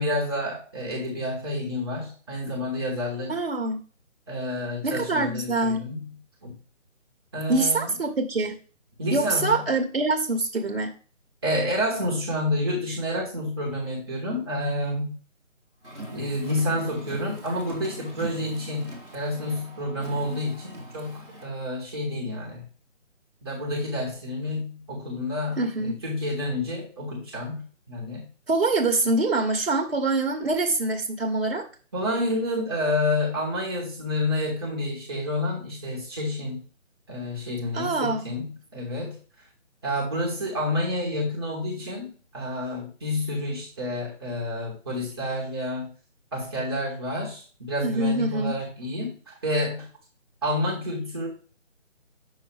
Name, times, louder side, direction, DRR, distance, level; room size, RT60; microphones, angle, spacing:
voice 1, 0.0-3.3 4.3-6.5 7.3-7.9 9.0-9.6 11.4-15.1 16.1-22.6 23.4-28.3 31.9-36.6 37.1-39.5 39.8-45.9 46.3-49.9 50.4-51.3, left 1 dB, 20° right, -4 dB, 1.2 m, -29 dB
voice 2, 3.3-3.8 4.8-5.8 7.5-8.5 9.1-10.9 25.6-25.9 28.5-31.6 37.7-38.2 47.8-48.5, right 2 dB, 50° right, 2 dB, 1.2 m, -24 dB
Car, 15.8-21.5, right 1 dB, 5° left, 0.9 m, -42 dB
7.2 x 5.7 x 3.3 m, 0.40 s
figure-of-eight pair, 155°, 39 cm